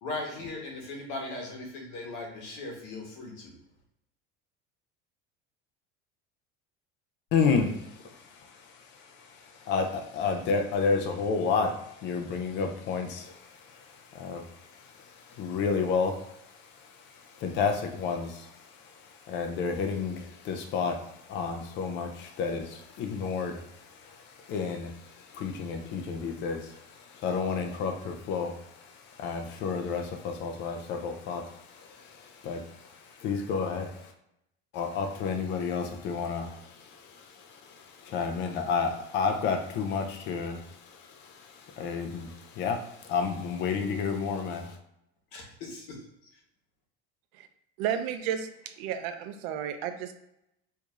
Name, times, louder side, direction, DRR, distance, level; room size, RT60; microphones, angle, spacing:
voice 1, 0.0-3.5 45.3-46.0, left 2 dB, 60° left, 0 dB, 1.1 m, -38 dB
voice 2, 7.3-34.1 34.7-44.8, left 5 dB, 40° left, 5 dB, 0.5 m, -32 dB
voice 3, 47.8-50.1, right 9 dB, 90° right, 8 dB, 0.5 m, -32 dB
4.6 x 2.6 x 2.4 m, 0.80 s
cardioid pair, 175°, 29 cm